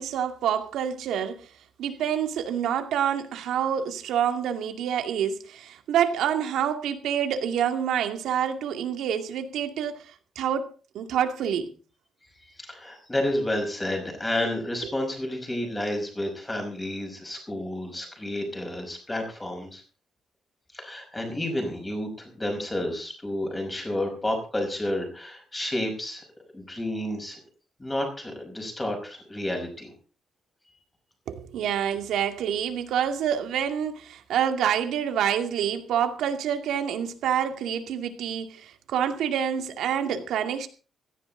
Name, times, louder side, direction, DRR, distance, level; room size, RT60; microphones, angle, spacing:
voice 1, 0.0-1.5 1.8-10.7 10.9-11.7 31.3-40.7, right 9 dB, 85° right, 2.4 m, -27 dB
voice 2, 12.6-19.8 20.7-26.2 26.5-27.4 27.8-29.9, left 1 dB, 10° left, 5.5 m, -30 dB
17.0 x 14.5 x 4.0 m
cardioid pair, 175°, 0 cm